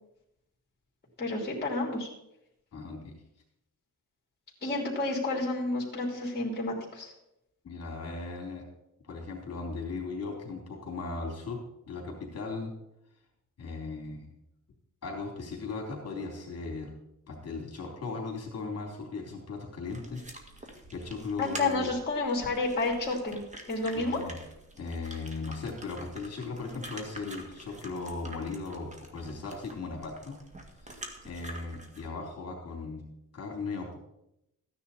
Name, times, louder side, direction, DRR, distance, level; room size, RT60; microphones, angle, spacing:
voice 1, 1.2-2.1 4.6-7.1 21.4-24.2, left 2 dB, 30° left, -2 dB, 3.2 m, -30 dB
voice 2, 2.7-3.1 7.6-8.6 9.0-12.7 13.6-14.3 15.0-16.9 17.3-20.2 20.6-21.9 23.9-24.4 24.8-30.4 30.8-33.0 33.3-34.0, left 3 dB, 50° left, 0 dB, 3.3 m, -37 dB
sound 1, 19.9-32.1, right 1 dB, 25° right, 1.8 m, -47 dB
14.5 x 10.0 x 4.2 m, 0.83 s
wide cardioid pair, 130°, 31 cm